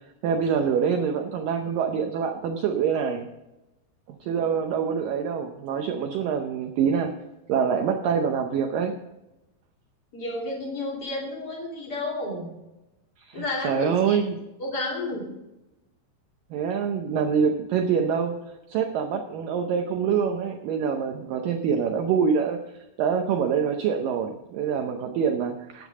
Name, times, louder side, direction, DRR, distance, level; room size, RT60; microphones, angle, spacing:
voice 1, 0.2-3.3 4.1-7.1 7.5-9.0 13.3-14.4 16.5-18.4 18.7-25.9, right 6 dB, 85° right, 5 dB, 1.9 m, -25 dB
voice 2, 10.1-12.5 13.3-14.2 14.6-15.2, left 2 dB, 25° left, -2 dB, 2.8 m, -31 dB
12.0 x 9.2 x 4.9 m, 0.98 s
omnidirectional pair, 5.0 m